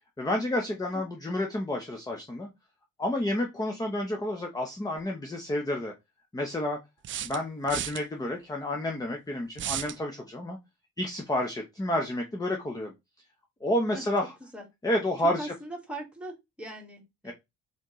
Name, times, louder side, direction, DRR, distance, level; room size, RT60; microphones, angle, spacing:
voice 1, 0.2-2.5 3.0-5.9 6.3-6.8 7.2-10.6 11.0-12.9 13.6-14.3 14.8-15.5 17.2-17.3, left 1 dB, 10° left, 3 dB, 0.8 m, -30 dB
sound 1, 5.0-5.1 7.0-8.0 9.6-10.0, right 11 dB, 40° right, 0.4 m, -34 dB
voice 2, 15.2-17.3, right 1 dB, 5° right, 0 dB, 1.7 m, -40 dB
4.1 x 3.8 x 3.1 m, 0.21 s
supercardioid pair, 80°, 32 cm